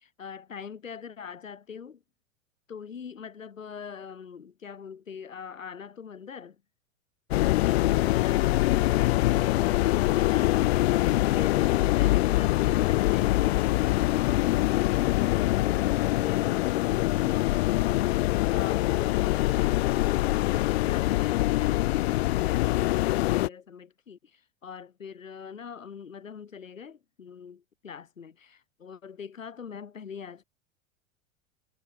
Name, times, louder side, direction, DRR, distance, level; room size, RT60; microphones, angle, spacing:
voice 1, 0.0-2.0 2.7-6.6 7.3-10.7 11.1-30.4, left 6 dB, 75° left, 6.1 m, -43 dB
sound 1, 7.3-23.5, left 17 dB, 55° left, 0.5 m, -24 dB
sound 2, 7.9-17.5, right 4 dB, 85° right, 2.7 m, -52 dB
figure-of-eight pair, 90°, 39 cm